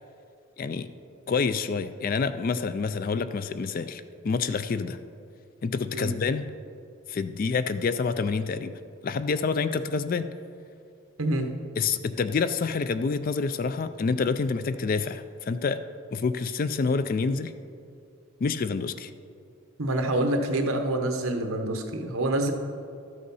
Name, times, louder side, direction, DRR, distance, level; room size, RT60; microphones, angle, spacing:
voice 1, 0.6-0.9 1.3-5.0 5.6-6.5 7.1-8.7 9.0-10.3 11.8-15.8 16.1-17.5 18.4-19.1, left 4 dB, 40° left, 12 dB, 0.3 m, -27 dB
voice 2, 11.2-11.5 19.8-22.5, right 1 dB, 75° right, 5 dB, 1.0 m, -26 dB
12.5 x 6.5 x 5.5 m, 2.4 s
head